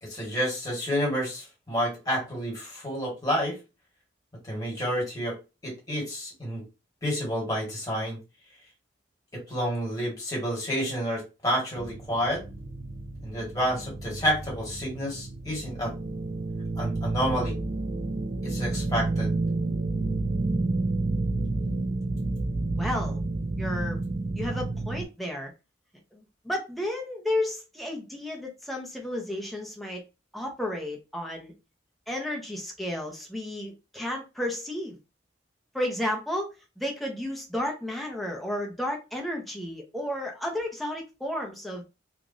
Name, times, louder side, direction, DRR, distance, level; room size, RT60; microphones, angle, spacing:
voice 1, 0.0-3.6 4.4-5.3 5.6-6.6 7.0-8.2 9.3-12.4 13.2-15.9 16.8-17.6 18.4-19.3, equal, 20° left, 1.5 m, -29 dB
sound 1, 11.8-25.1, right 2 dB, 40° right, 0.4 m, -30 dB
voice 2, 22.8-23.2 23.6-24.0 24.4-25.5 26.1-30.0 30.3-31.5 32.1-35.0 35.7-36.5 36.8-41.8, left 1 dB, ahead, 0.7 m, -32 dB
3.0 x 2.5 x 2.5 m
head